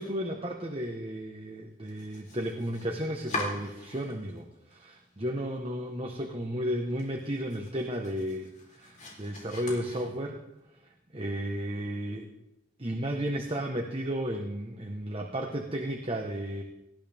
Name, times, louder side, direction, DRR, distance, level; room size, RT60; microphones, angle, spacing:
voice 1, 0.0-10.4 11.1-12.3 12.8-16.6, equal, 30° right, 2 dB, 1.2 m, -33 dB
Domestic sounds home sounds, 1.8-4.4 4.7-5.5 5.8-5.9 6.3-6.4 6.8-10.5, left 2 dB, 40° left, 3.9 m, -42 dB
19.0 x 14.5 x 3.6 m, 0.91 s
head